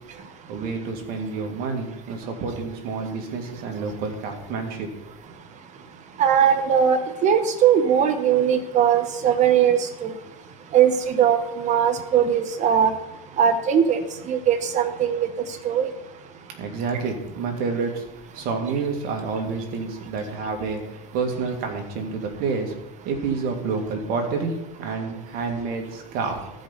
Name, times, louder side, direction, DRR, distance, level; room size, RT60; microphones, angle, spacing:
voice 1, 0.5-4.9 16.6-18.0 18.3-20.8 21.1-22.7 23.0-26.4, right 4 dB, 55° right, 3 dB, 2.4 m, -28 dB
voice 2, 6.2-10.1 10.7-12.9 13.4-14.0 14.3-15.3 15.6-15.9, right 8 dB, 40° right, 7 dB, 1.3 m, -20 dB
15.0 x 5.3 x 4.2 m, 0.90 s
supercardioid pair, 100°, 18 cm